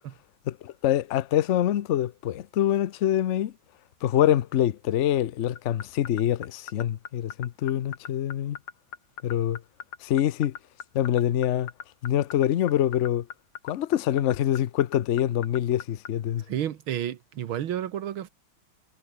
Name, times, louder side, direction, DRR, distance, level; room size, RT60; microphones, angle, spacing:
voice 1, 0.5-3.5 4.0-8.6 9.2-9.6 10.0-10.5 10.9-11.7 12.0-13.3 13.6-16.4, left 11 dB, 70° left, 0.6 m, -25 dB
sound 1, 5.6-16.1, left 7 dB, 90° left, 2.7 m, -38 dB
voice 2, 16.5-18.3, right 10 dB, 85° right, 2.0 m, -31 dB
omnidirectional pair, 2.2 m